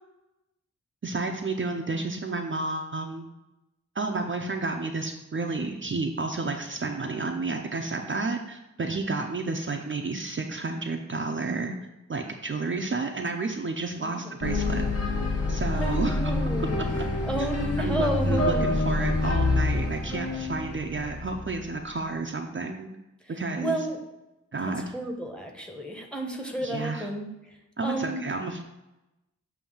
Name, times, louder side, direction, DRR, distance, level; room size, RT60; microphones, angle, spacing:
voice 1, 1.0-3.3 3.9-11.7 12.1-14.8 15.5-16.3 16.8-17.0 17.4-17.5 17.8-22.9 23.3-23.9 24.5-24.9 26.6-27.1 27.8-28.6, right 3 dB, 40° right, 2 dB, 0.5 m, -31 dB
voice 2, 14.0-14.3 15.7-16.8 17.3-18.8 23.6-24.0 24.9-27.3 27.8-28.2, right 1 dB, 5° left, 2 dB, 0.9 m, -31 dB
sound 1, 14.4-21.7, left 2 dB, 55° left, 1.2 m, -27 dB
7.1 x 2.8 x 5.4 m, 0.97 s
wide cardioid pair, 95°, 30 cm